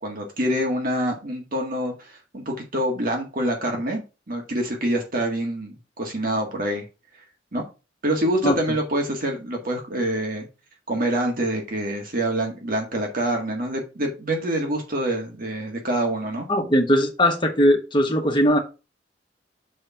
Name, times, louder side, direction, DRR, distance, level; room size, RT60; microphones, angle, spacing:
voice 1, 0.0-6.8 7.5-7.6 8.0-10.5 10.9-16.5, right 1 dB, 50° right, 1.8 m, -26 dB
voice 2, 16.5-18.6, equal, 25° left, 1.5 m, -19 dB
6.4 x 4.4 x 5.7 m
head